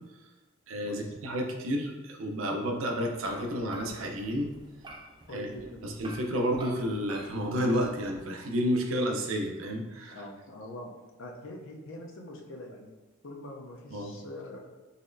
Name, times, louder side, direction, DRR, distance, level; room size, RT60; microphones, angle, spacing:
voice 1, 0.7-4.5 5.3-5.5 5.8-10.2 13.9-14.1, equal, 75° right, 2 dB, 0.5 m, -31 dB
sound 1, 3.1-8.2, right 1 dB, 20° right, 0.4 m, -48 dB
voice 2, 5.3-5.8 10.1-10.9 11.2-13.0 13.2-14.6, left 1 dB, 65° left, 1 dB, 0.6 m, -43 dB
4.1 x 3.0 x 2.5 m, 1.2 s
head